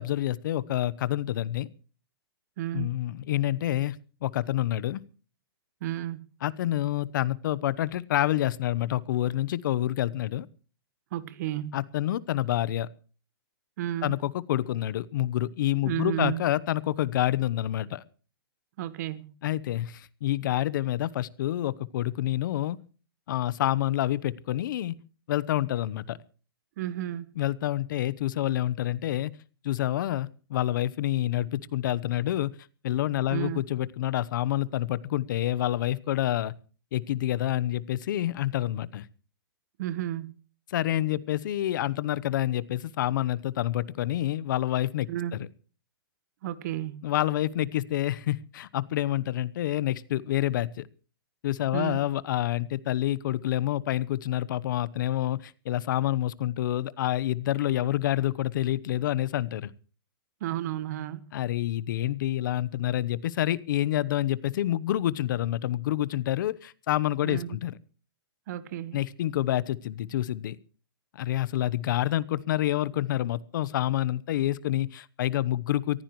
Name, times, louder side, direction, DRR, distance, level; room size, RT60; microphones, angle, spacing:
voice 1, 0.0-1.7 2.7-4.0 4.2-5.0 6.4-10.5 11.7-12.9 14.0-18.0 19.4-22.8 23.3-24.9 25.3-26.2 27.4-29.3 29.6-32.5 32.8-36.5 36.9-39.1 40.7-45.1 45.4-45.5 47.0-50.9 51.4-59.7 61.3-67.8 68.9-70.6 71.1-76.0, left 13 dB, 55° left, 0.9 m, -28 dB
voice 2, 2.6-3.0 5.8-6.3 11.1-11.8 13.8-14.1 15.8-16.5 18.8-19.3 26.8-27.3 33.3-33.6 39.8-40.4 45.1-45.4 46.4-47.0 51.7-52.0 60.4-61.2 67.2-67.6 68.5-69.0, right 13 dB, 45° right, 1.2 m, -32 dB
23.0 x 15.0 x 3.2 m
hypercardioid pair, 155°, 13 cm